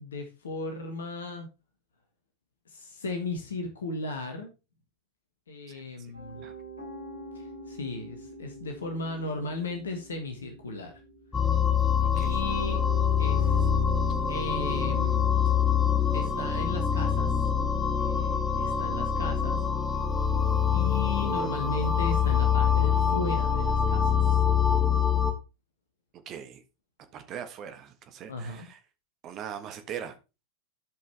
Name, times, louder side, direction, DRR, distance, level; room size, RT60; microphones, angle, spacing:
voice 1, 0.0-1.5 2.7-4.5 5.5-6.5 7.3-10.9 12.1-12.8 13.2-13.6 14.3-15.3 16.1-17.4 18.0-19.6 20.7-24.4 28.3-28.7, left 2 dB, 70° left, 1.6 m, -36 dB
voice 2, 5.7-6.5 12.2-12.4 26.2-26.6 27.1-28.8 29.2-30.2, right 9 dB, 35° right, 1.4 m, -41 dB
Piano, 6.1-23.3, right 2 dB, 85° left, 5.5 m, -47 dB
sound 1, 11.3-25.3, left 7 dB, 20° left, 1.6 m, -25 dB
13.0 x 5.4 x 3.4 m
figure-of-eight pair, 90°, 0 cm